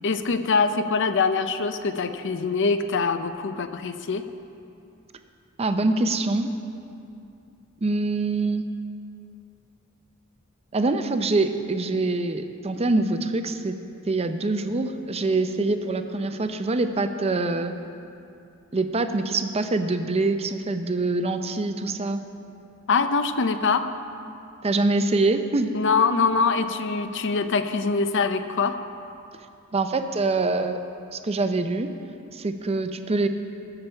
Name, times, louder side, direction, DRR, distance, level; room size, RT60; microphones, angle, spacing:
voice 1, 0.0-4.2 22.9-23.9 25.7-28.8, left 4 dB, 60° left, 10 dB, 0.6 m, -23 dB
voice 2, 5.6-6.5 7.8-8.6 10.7-13.8 14.1-17.7 18.7-22.2 24.6-25.7 29.7-30.8 31.1-31.9 32.3-33.3, right 2 dB, 30° right, 8 dB, 0.6 m, -24 dB
19.5 x 7.0 x 4.5 m, 2.6 s
head